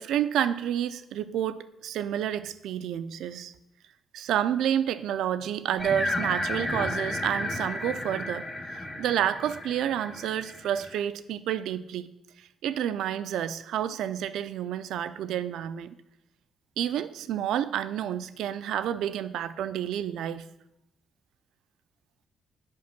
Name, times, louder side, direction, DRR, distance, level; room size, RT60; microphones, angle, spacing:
voice 1, 0.0-3.5 4.1-12.1 12.6-16.0 16.8-20.5, right 10 dB, 80° right, 0.4 m, -29 dB
sound 1, 5.8-11.0, left 1 dB, 20° left, 1.2 m, -33 dB
7.6 x 5.3 x 5.8 m
cardioid pair, 90°, 0 cm